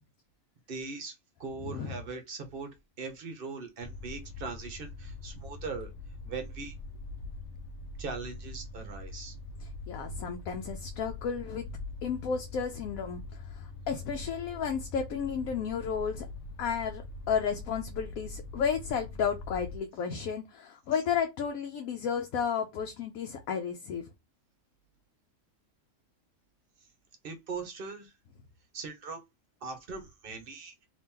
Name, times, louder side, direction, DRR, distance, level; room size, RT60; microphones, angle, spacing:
voice 1, 0.7-1.1 1.4-2.7 3.0-5.9 6.2-6.7 8.0-9.4 27.2-28.1 28.7-29.2 29.6-30.7, right 4 dB, 50° right, 0.8 m, -40 dB
voice 2, 1.6-1.9 9.6-11.6 12.0-16.3 16.6-24.1, left 7 dB, 90° left, 1.0 m, -33 dB
sound 1, 3.8-19.8, left 3 dB, 65° left, 0.8 m, -43 dB
2.8 x 2.8 x 3.5 m
omnidirectional pair, 1.4 m